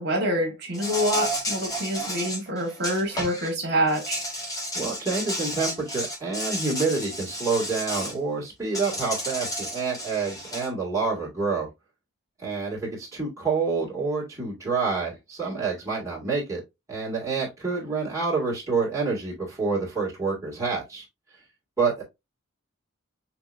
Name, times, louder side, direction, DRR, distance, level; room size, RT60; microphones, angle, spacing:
voice 1, 0.0-4.2 17.7-17.8, equal, 55° right, 1.6 m, -26 dB
Insect, 0.7-3.5 3.9-8.1 8.7-10.7, equal, 15° left, 1.2 m, -32 dB
voice 2, 4.7-11.7 12.4-16.6 16.9-21.0 21.8-22.0, right 4 dB, 15° right, 2.1 m, -28 dB
6.0 x 2.9 x 2.5 m
head